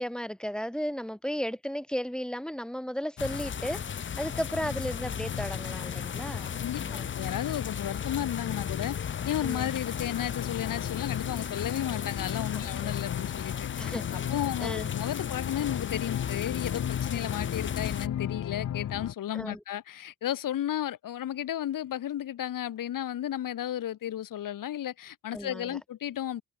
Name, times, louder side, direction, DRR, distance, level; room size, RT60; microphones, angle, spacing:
voice 1, 0.0-3.8 4.2-7.1 9.4-9.7 12.5-12.9 13.8-14.2 14.6-14.9 19.3-19.6 25.3-25.8, equal, ahead, 2.6 m, -35 dB
sound 1, 3.2-18.1, left 7 dB, 35° left, 1.0 m, -36 dB
sound 2, 4.3-19.1, left 10 dB, 55° left, 1.6 m, -37 dB
voice 2, 6.5-9.0 9.2-13.7 14.1-26.4, left 11 dB, 75° left, 5.3 m, -33 dB
cardioid pair, 145°, 33 cm